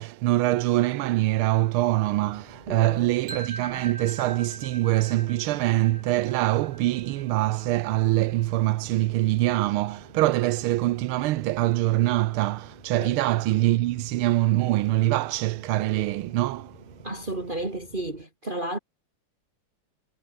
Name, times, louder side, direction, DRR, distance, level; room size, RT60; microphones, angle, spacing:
voice 1, 0.0-17.0, right 16 dB, 90° right, 1.6 m, -24 dB
sound 1, 1.3-18.2, left 1 dB, 20° left, 6.3 m, -51 dB
voice 2, 2.7-3.1 13.0-13.2 17.0-18.8, right 1 dB, 25° right, 3.2 m, -32 dB
sound 2, 3.3-9.2, right 2 dB, 65° right, 7.5 m, -43 dB
omnidirectional pair, 2.3 m